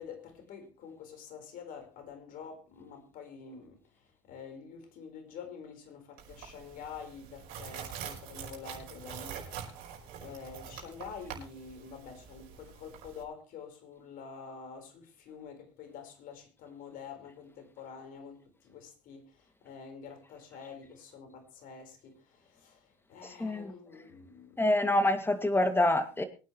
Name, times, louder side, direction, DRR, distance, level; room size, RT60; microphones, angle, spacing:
voice 1, 0.0-9.9 10.2-24.6, left 6 dB, 60° left, 4.7 m, -47 dB
sound 1, 6.2-13.2, right 8 dB, 65° right, 5.3 m, -45 dB
voice 2, 23.2-23.7 24.6-26.2, left 1 dB, 15° left, 2.4 m, -26 dB
23.5 x 9.6 x 3.2 m
hypercardioid pair, 70°, 16 cm